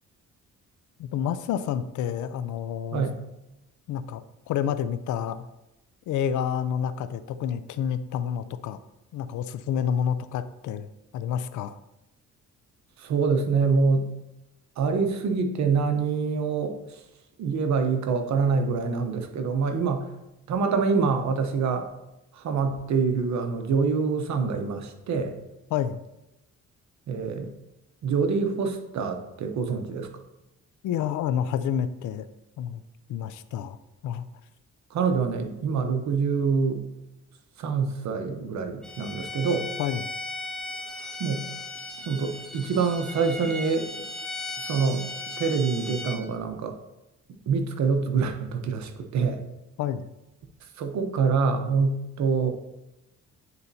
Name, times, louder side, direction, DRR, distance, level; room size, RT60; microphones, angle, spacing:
voice 1, 1.0-3.1 3.9-5.5 6.1-8.8 9.1-11.8 25.7-26.0 30.8-32.3 32.6-32.8 33.1-33.8 34.0-34.2 39.8-40.0 49.8-50.1, left 9 dB, 75° left, 13 dB, 0.5 m, -29 dB
voice 2, 13.0-14.1 14.8-17.0 17.4-20.1 20.5-21.9 22.3-25.4 27.1-27.5 28.0-30.1 34.9-36.8 37.6-39.7 41.2-41.5 42.1-43.9 44.6-45.1 45.4-46.8 47.5-49.4 50.8-52.5, right 5 dB, 65° right, 6 dB, 0.9 m, -25 dB
Bowed string instrument, 38.8-46.2, left 2 dB, ahead, 0.8 m, -37 dB
9.5 x 4.1 x 2.7 m, 0.94 s
cardioid pair, 90°, 30 cm